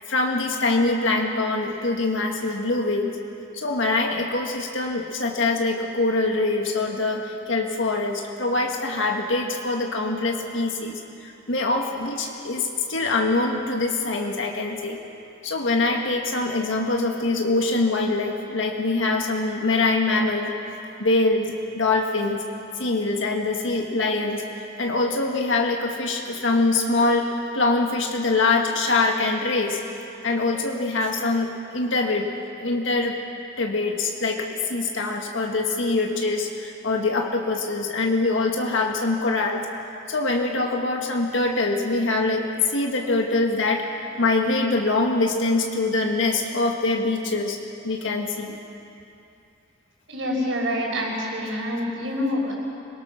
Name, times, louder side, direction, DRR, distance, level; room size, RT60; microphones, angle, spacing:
voice 1, 0.1-3.1 3.5-15.0 15.4-20.5 21.0-22.4 22.8-24.4 24.8-29.8 30.2-32.3 32.6-33.1 33.6-39.6 40.1-43.8 44.2-47.6 47.8-48.6, left 3 dB, 75° left, 1 dB, 1.8 m, -24 dB
voice 2, 50.1-52.5, left 1 dB, 70° right, -2 dB, 5.8 m, -26 dB
26.5 x 18.0 x 6.4 m, 2.7 s
head